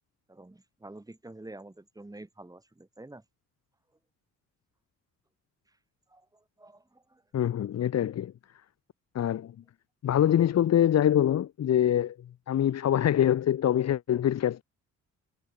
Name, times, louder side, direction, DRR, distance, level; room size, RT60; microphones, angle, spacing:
voice 1, 0.3-3.2 5.7-5.8 6.1-7.2, right 2 dB, 10° right, 6.6 m, -48 dB
voice 2, 7.3-8.3 9.1-9.5 10.0-12.2 12.5-14.6, left 10 dB, 60° left, 1.4 m, -24 dB
cardioid pair, 90°, 30 cm